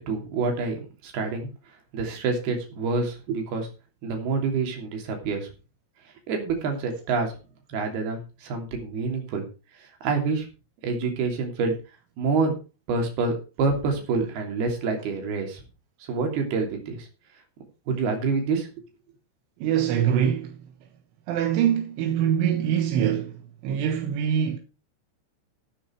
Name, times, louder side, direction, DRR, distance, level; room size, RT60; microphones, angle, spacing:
voice 1, 0.1-1.5 1.9-3.7 4.0-5.5 6.3-7.3 7.7-9.5 10.0-10.5 10.8-11.8 12.2-12.6 12.9-15.6 16.1-17.1 17.9-18.9, right 4 dB, 55° right, 4.6 m, -27 dB
voice 2, 19.6-20.5 21.3-23.4 23.6-24.6, right 9 dB, 80° right, 3.6 m, -23 dB
12.5 x 8.9 x 4.6 m
omnidirectional pair, 5.7 m